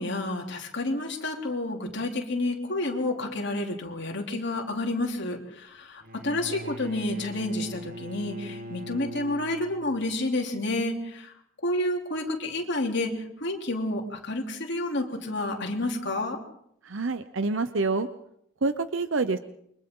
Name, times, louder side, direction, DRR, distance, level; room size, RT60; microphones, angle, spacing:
voice 1, 0.0-11.3 11.6-16.4, left 2 dB, 60° left, 1 dB, 3.3 m, -30 dB
Bowed string instrument, 6.0-10.1, left 1 dB, 45° right, 1.4 m, -41 dB
voice 2, 16.8-18.1 18.6-19.4, right 3 dB, 70° right, 11 dB, 0.8 m, -27 dB
29.0 x 24.0 x 3.8 m, 0.73 s
head